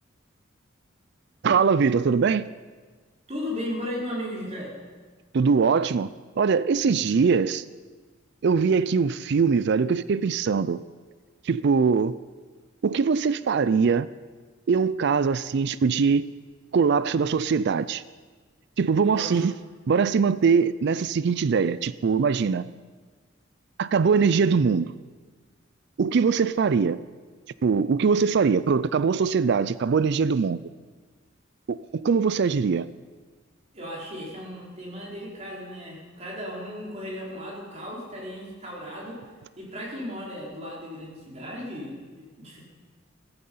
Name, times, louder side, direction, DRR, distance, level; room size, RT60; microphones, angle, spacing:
voice 1, 1.4-2.5 5.3-6.1 6.4-7.6 8.4-10.8 11.4-12.1 12.8-14.1 14.7-16.2 16.7-18.0 18.8-19.5 19.9-22.7 23.8-24.9 26.0-27.0 27.6-30.6 31.7-32.9, right 5 dB, 60° right, 0.4 m, -22 dB
voice 2, 3.3-4.8 19.0-19.4 33.7-39.3 39.6-42.6, equal, 35° right, 4.7 m, -36 dB
15.0 x 15.0 x 5.6 m
head